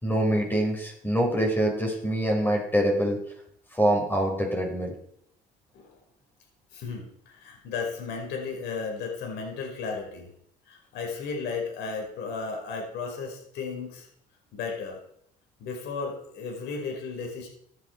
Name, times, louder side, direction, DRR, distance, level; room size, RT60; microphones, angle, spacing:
voice 1, 0.0-3.2 3.7-4.9, right 1 dB, 10° left, 1 dB, 5.2 m, -25 dB
voice 2, 6.7-10.3 10.7-14.1 14.5-15.0 15.6-17.5, left 4 dB, 85° left, 1 dB, 5.2 m, -34 dB
16.0 x 11.0 x 4.7 m, 0.69 s
cardioid pair, 110°, 17 cm